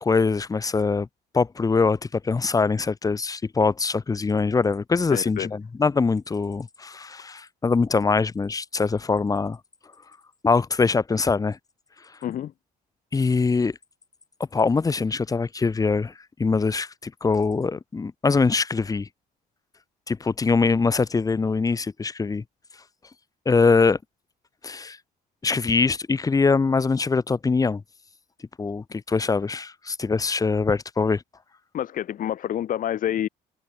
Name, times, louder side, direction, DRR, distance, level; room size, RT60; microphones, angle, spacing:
voice 1, 0.0-1.1 1.3-9.6 10.4-11.6 13.1-13.8 14.5-16.1 16.4-19.1 20.1-22.4 23.4-24.0 24.6-25.0 25.4-27.8 28.6-31.2, left 4 dB, 20° left, 1.1 m, -23 dB
voice 2, 5.1-5.5 12.2-12.5 31.7-33.3, left 11 dB, 55° left, 1.2 m, -28 dB
open air
cardioid pair, 110°, 17 cm